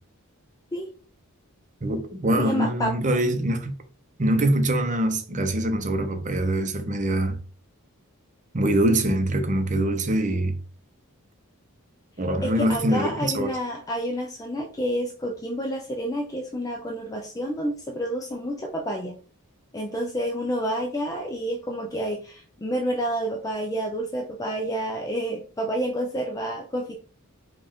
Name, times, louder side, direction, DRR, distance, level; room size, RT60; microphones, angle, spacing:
voice 1, 1.8-3.7 4.2-7.4 8.5-10.6 12.2-13.5, right 1 dB, 35° right, 0.7 m, -24 dB
voice 2, 2.4-3.0 12.4-19.2 19.7-26.9, equal, 15° left, 0.4 m, -29 dB
5.4 x 2.4 x 3.5 m
head